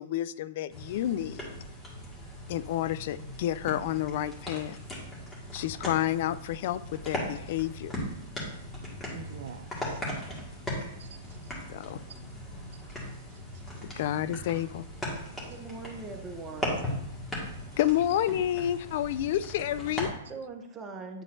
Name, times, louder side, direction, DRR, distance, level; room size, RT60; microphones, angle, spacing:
voice 1, 0.0-1.6 2.5-4.8 5.5-7.9 11.7-12.0 13.8-14.8 17.8-20.1, left 12 dB, 55° left, 0.3 m, -30 dB
sound 1, 0.7-20.1, equal, 15° left, 1.9 m, -38 dB
voice 2, 9.1-10.0 10.7-11.9 12.7-14.0, right 7 dB, 60° right, 0.5 m, -49 dB
voice 3, 15.5-16.7 20.3-21.2, right 3 dB, 20° right, 0.8 m, -41 dB
9.0 x 4.0 x 2.6 m
hypercardioid pair, 115°, 0 cm